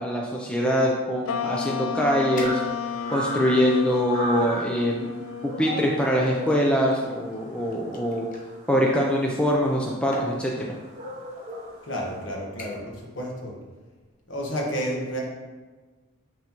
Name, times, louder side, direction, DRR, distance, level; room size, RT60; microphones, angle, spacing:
voice 1, 0.0-2.6 3.1-5.1 5.4-8.3 8.7-10.5, equal, 5° left, -2 dB, 0.5 m, -23 dB
sound 1, 1.3-8.0, left 7 dB, 85° left, 0.3 m, -34 dB
sound 2, 2.4-3.1 3.7-4.6 5.6-8.5 9.6-9.8 10.1-10.4 11.3-11.5 11.9-12.2 12.6-13.0 13.3-13.7 14.0-14.1, equal, 35° left, 0.8 m, -41 dB
sound 3, 2.4-12.2, equal, 30° right, 1.7 m, -38 dB
voice 2, 11.8-13.6 14.3-15.2, equal, 60° left, -2 dB, 1.3 m, -31 dB
6.1 x 5.8 x 3.0 m, 1.3 s
head